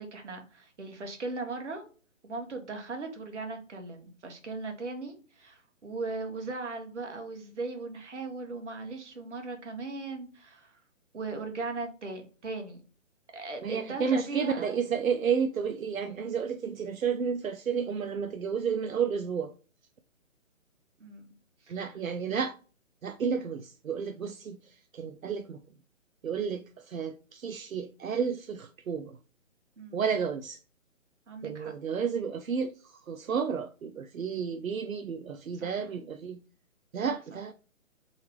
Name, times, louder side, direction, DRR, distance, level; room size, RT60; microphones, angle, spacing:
voice 1, 0.0-1.8 2.2-10.8 11.1-12.8 13.3-14.7 21.0-21.3 21.6-21.8 29.8-30.0 31.3-31.7 35.5-35.8 37.0-37.4, right 3 dB, 60° right, 1.5 m, -38 dB
voice 2, 13.6-19.5 21.7-22.6 23.0-25.6 26.2-29.2 29.9-30.6 31.4-36.4 36.9-37.5, right 6 dB, 85° right, 0.5 m, -31 dB
4.0 x 3.9 x 3.3 m
figure-of-eight pair, 140°, 40 cm